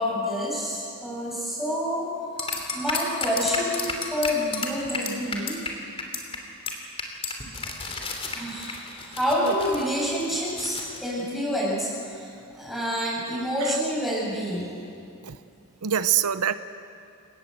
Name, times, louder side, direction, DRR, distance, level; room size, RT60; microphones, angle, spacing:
voice 1, 0.0-2.1 2.7-5.6 8.3-12.3 12.5-14.7, equal, ahead, -5 dB, 7.7 m, -28 dB
sound 1, 2.4-5.7 6.0-6.4 6.7-6.8 7.0-11.0, left 4 dB, 25° left, 3.2 m, -32 dB
voice 2, 15.8-16.5, right 9 dB, 90° right, 12 dB, 0.7 m, -25 dB
28.5 x 18.5 x 7.9 m, 2.6 s
head